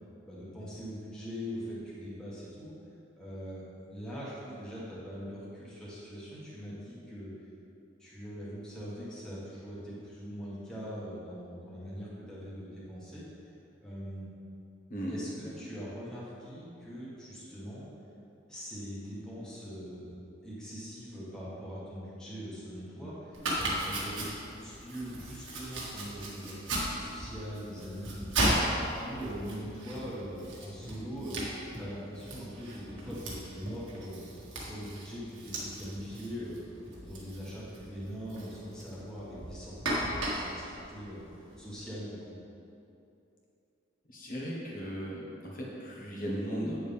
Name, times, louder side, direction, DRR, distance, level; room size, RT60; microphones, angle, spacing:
voice 1, 0.2-2.7 3.2-7.3 8.0-13.2 13.8-14.2 15.1-17.9 18.5-20.1 20.4-31.4 31.8-34.2 34.5-36.6 36.9-41.2 41.6-42.3, equal, 5° left, -10 dB, 1.6 m, -42 dB
Domestic sounds home sounds, 23.3-41.8, right 1 dB, 80° right, 1.7 m, -36 dB
voice 2, 44.1-46.8, equal, 45° left, -4 dB, 1.5 m, -36 dB
8.8 x 6.6 x 3.6 m, 2.7 s
head